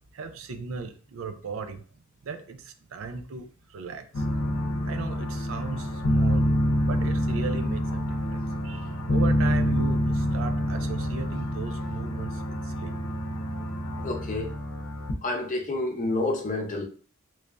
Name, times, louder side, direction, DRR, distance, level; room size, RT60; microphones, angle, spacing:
voice 1, 0.1-1.8 2.2-4.2 4.9-6.5 6.8-13.0, right 5 dB, 70° right, 8 dB, 0.4 m, -37 dB
sound 1, 4.1-15.1, equal, 85° left, 0.6 m, -27 dB
voice 2, 14.0-14.5 15.2-16.8, left 2 dB, 35° left, 2 dB, 0.7 m, -29 dB
3.1 x 2.5 x 3.3 m, 0.42 s
head